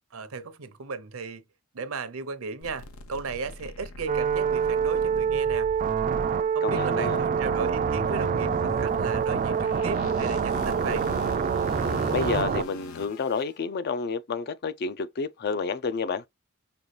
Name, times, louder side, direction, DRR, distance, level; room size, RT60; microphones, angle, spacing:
voice 1, 0.1-1.4 1.7-5.7 6.5-11.0, right 4 dB, 75° right, 0.7 m, -35 dB
sound 1, 2.6-13.4, left 2 dB, 80° left, 0.7 m, -41 dB
sound 2, 4.1-12.6, right 6 dB, 40° right, 0.3 m, -26 dB
voice 2, 6.6-7.2 12.1-16.2, left 5 dB, 50° left, 0.4 m, -30 dB
5.4 x 2.3 x 3.2 m
head